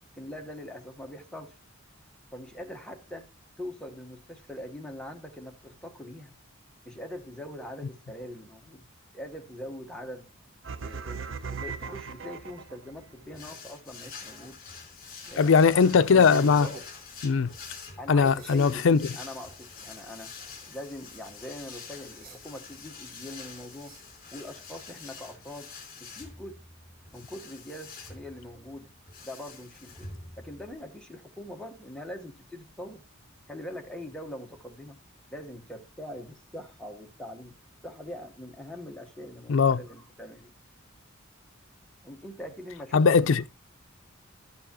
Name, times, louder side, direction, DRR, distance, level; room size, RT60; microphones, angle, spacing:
voice 1, 0.1-1.5 2.3-3.3 3.6-6.3 6.8-8.8 9.1-10.3 10.7-14.6 15.2-16.1 18.0-20.4 20.7-24.0 24.3-25.7 26.0-26.6 27.1-28.9 29.2-30.1 30.4-33.0 33.5-35.0 35.3-37.6 37.8-40.5 42.0-43.5, left 1 dB, 5° left, 1.1 m, -42 dB
sound 1, 10.6-13.0, right 5 dB, 70° right, 0.6 m, -38 dB
sound 2, 13.3-30.7, left 5 dB, 45° left, 2.7 m, -46 dB
sound 3, 15.3-24.1, right 3 dB, 45° right, 1.7 m, -49 dB
voice 2, 15.4-16.7 17.2-17.5 18.1-19.0 39.5-39.8 42.9-43.5, left 5 dB, 65° left, 0.4 m, -20 dB
12.0 x 7.0 x 2.9 m
head